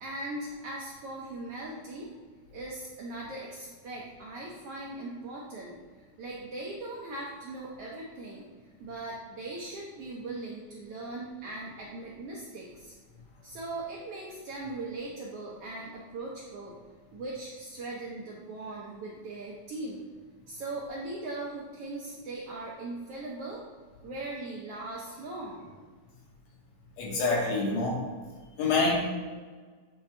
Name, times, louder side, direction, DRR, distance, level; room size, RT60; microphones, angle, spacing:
voice 1, 0.0-2.1 2.5-5.8 6.2-8.5 8.8-12.9 13.4-16.8 17.1-20.1 20.5-23.6 24.0-25.8, right 2 dB, 70° right, -4 dB, 1.4 m, -39 dB
voice 2, 27.0-28.0 28.6-28.9, left 3 dB, 65° left, -3 dB, 2.1 m, -26 dB
8.4 x 3.8 x 3.3 m, 1.4 s
omnidirectional pair, 3.4 m